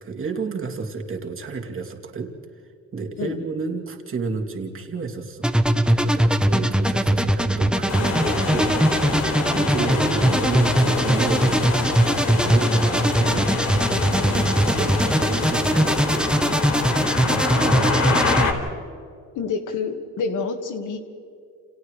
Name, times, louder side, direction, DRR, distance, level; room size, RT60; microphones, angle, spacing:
voice 1, 0.0-2.3 2.9-5.5 5.9-11.9 12.3-13.6 14.2-16.3 16.9-18.5, right 4 dB, 45° right, 1 dB, 2.9 m, -31 dB
sound 1, 5.4-18.4, right 1 dB, 5° right, 1.0 m, -21 dB
sound 2, 7.9-18.5, left 3 dB, 60° left, 4.5 m, -26 dB
voice 2, 17.0-17.6 19.4-21.0, left 5 dB, 85° left, 5 dB, 1.8 m, -29 dB
30.0 x 29.0 x 3.3 m, 2.4 s
cardioid pair, 90°, 30 cm